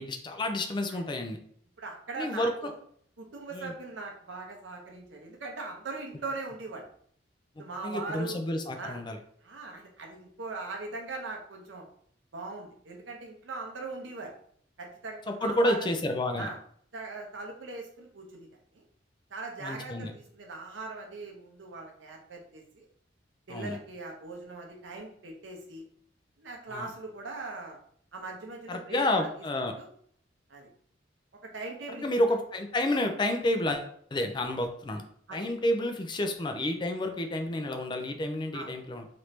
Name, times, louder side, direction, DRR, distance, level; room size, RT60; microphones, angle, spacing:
voice 1, 0.0-1.4 2.2-2.7 3.5-3.7 7.6-9.2 15.3-16.5 19.6-20.1 23.5-23.8 26.7-26.9 28.7-29.7 32.0-35.0 35.3-39.1, left 1 dB, 25° left, 6 dB, 0.4 m, -30 dB
voice 2, 1.8-2.8 3.2-6.9 7.6-8.4 8.8-9.0 9.4-11.9 12.3-14.3 14.8-15.9 16.4-16.6 16.9-18.5 18.7-18.8 19.3-22.9 23.5-25.8 26.4-27.8 28.1-29.3 29.8-29.9 30.5-30.7 31.4-32.1 35.3-35.5 38.5-38.7, right 3 dB, 80° right, 1 dB, 0.8 m, -40 dB
3.0 x 2.6 x 3.2 m, 0.62 s
head